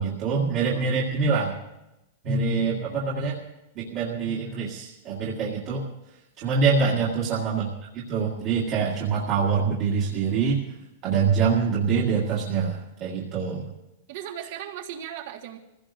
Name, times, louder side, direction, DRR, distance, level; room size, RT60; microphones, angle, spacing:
voice 1, 0.0-1.5 2.2-3.4 3.8-5.8 6.4-7.7 7.9-10.6 11.0-13.7, right 5 dB, 35° right, -6 dB, 1.9 m, -25 dB
voice 2, 6.9-7.5 14.1-15.6, right 10 dB, 50° right, 4 dB, 1.7 m, -38 dB
25.0 x 16.0 x 2.6 m, 0.94 s
supercardioid pair, 165°, 0 cm